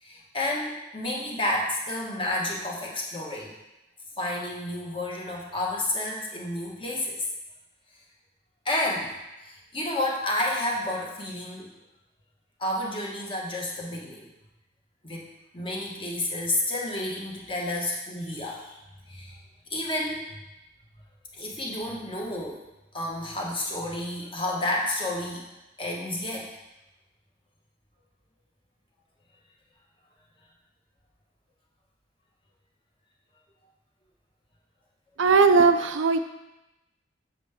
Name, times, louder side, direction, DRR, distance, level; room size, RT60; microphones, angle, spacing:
voice 1, 0.0-3.5 4.2-7.2 8.6-9.1 9.4-11.7 12.6-14.3 15.0-15.3 15.5-18.8 19.1-19.4 19.7-20.4 21.4-22.6 22.9-25.4 25.8-26.5, left 1 dB, 25° left, -2 dB, 1.3 m, -30 dB
voice 2, 35.2-36.2, right 4 dB, 85° right, 9 dB, 0.5 m, -18 dB
7.3 x 6.6 x 3.6 m, 0.96 s
head